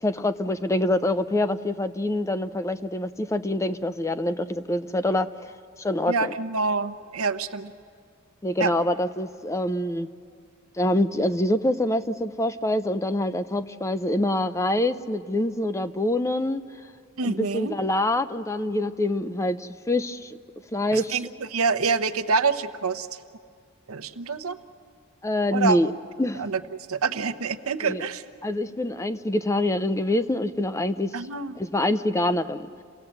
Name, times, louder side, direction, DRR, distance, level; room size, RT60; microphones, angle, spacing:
voice 1, 0.0-5.5 5.8-6.3 8.4-10.1 10.8-16.6 17.2-20.3 20.7-21.2 25.2-25.9 26.2-26.4 27.8-28.0 28.4-31.2 31.6-32.7, left 1 dB, 15° left, 11 dB, 0.5 m, -25 dB
voice 2, 6.1-7.7 8.6-8.7 17.2-17.7 20.9-23.1 23.9-24.6 25.5-25.8 26.4-28.2 31.1-31.5, right 4 dB, 75° right, 9 dB, 0.9 m, -26 dB
28.5 x 18.0 x 7.9 m, 2.3 s
head